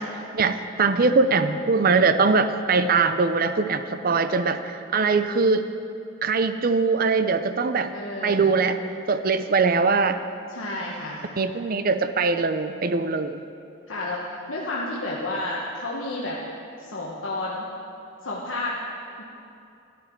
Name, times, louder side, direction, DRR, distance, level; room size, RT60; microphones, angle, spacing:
voice 1, 0.3-5.7 6.2-7.9 8.2-8.8 9.1-10.2 11.4-13.4, right 4 dB, 45° right, 10 dB, 0.5 m, -22 dB
voice 2, 7.9-8.5 10.5-11.2 13.9-14.2 14.5-16.4 16.8-17.6 18.2-18.8 19.2-19.3, left 2 dB, 75° left, -5 dB, 1.2 m, -31 dB
13.5 x 11.0 x 4.6 m, 2.6 s
head